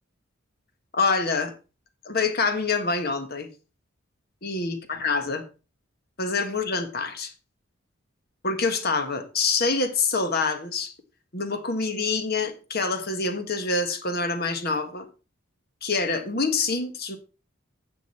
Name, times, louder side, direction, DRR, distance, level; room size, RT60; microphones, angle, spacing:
voice 1, 0.9-1.5 2.0-3.5 4.4-5.4 6.2-7.3 8.4-10.9 11.3-15.0 15.8-17.2, left 4 dB, 50° left, 7 dB, 1.5 m, -26 dB
9.7 x 7.0 x 4.3 m, 0.33 s
head